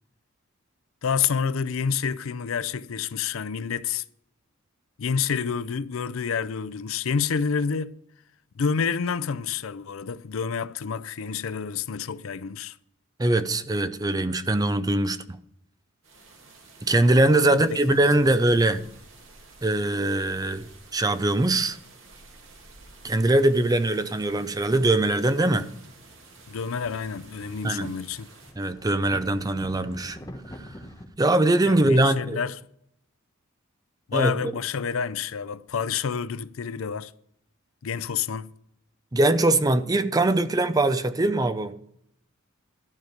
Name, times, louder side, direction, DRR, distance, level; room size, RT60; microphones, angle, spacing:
voice 1, 1.0-4.0 5.0-8.0 8.6-12.8 17.4-18.3 26.5-28.3 31.7-32.6 34.1-37.1 37.8-38.5, left 6 dB, 70° left, 0.5 m, -28 dB
voice 2, 13.2-15.4 16.8-18.9 19.6-21.8 23.0-25.7 27.6-27.9 28.6-30.2 31.2-32.4 34.1-34.5 39.1-41.7, right 2 dB, 20° right, 0.6 m, -22 dB
sound 1, 16.0-28.5, right 3 dB, 65° right, 2.3 m, -51 dB
sound 2, 24.5-31.1, equal, 20° left, 1.1 m, -46 dB
12.0 x 5.1 x 7.8 m
head